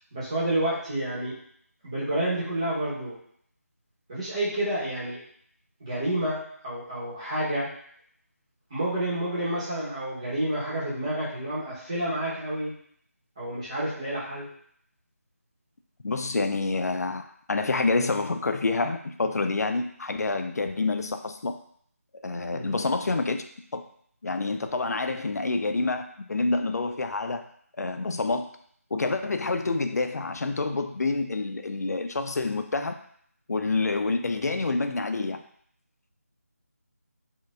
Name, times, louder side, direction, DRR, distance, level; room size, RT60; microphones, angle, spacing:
voice 1, 0.1-1.3 1.8-3.1 4.1-5.2 5.8-7.7 8.7-12.7 13.4-14.5 22.5-22.8, right 1 dB, 20° right, -9 dB, 1.1 m, -29 dB
voice 2, 16.0-21.6 22.2-23.4 23.7-23.8 24.2-27.4 27.8-28.5 28.9-33.0 33.5-35.4, left 3 dB, 85° left, 7 dB, 0.4 m, -27 dB
4.3 x 2.4 x 2.4 m, 0.63 s
figure-of-eight pair, 175°, 8 cm